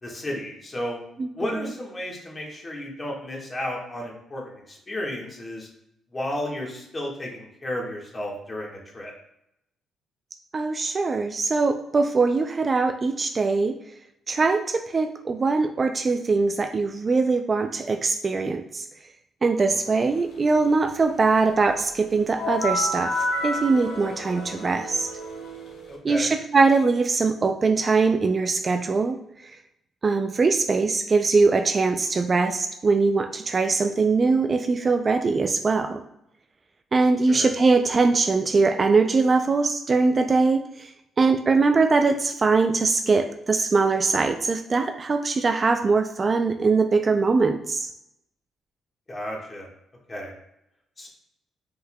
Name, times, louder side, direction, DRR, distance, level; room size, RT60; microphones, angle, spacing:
voice 1, 0.0-1.0 1.3-5.7 6.1-9.1 19.9-20.0 25.9-26.3 37.3-37.5 49.1-49.7 50.1-50.3 51.0-51.1, left 1 dB, 25° left, -2 dB, 1.4 m, -33 dB
voice 2, 1.2-1.7 10.5-13.8 14.3-18.8 19.4-25.1 26.0-29.6 30.0-36.0 36.9-47.9, right 4 dB, 35° right, 6 dB, 0.3 m, -22 dB
sound 1, 22.4-26.0, left 1 dB, 80° left, 1.0 m, -30 dB
5.4 x 3.9 x 2.2 m, 0.80 s
cardioid pair, 90°, 0 cm